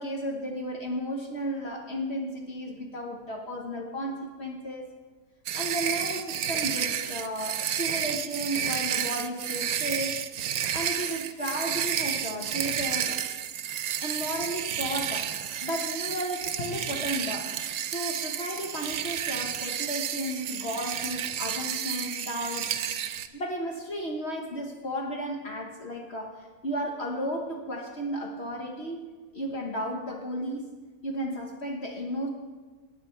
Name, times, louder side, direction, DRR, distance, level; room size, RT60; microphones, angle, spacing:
voice 1, 0.0-4.9 5.5-10.2 10.7-13.2 14.0-17.6 17.8-22.8 23.3-29.1 29.3-30.7 31.0-32.3, equal, 50° left, 0 dB, 1.4 m, -34 dB
sound 1, 5.5-23.3, right 9 dB, 75° right, 1.1 m, -31 dB
18.5 x 8.5 x 4.4 m, 1.3 s
omnidirectional pair, 1.5 m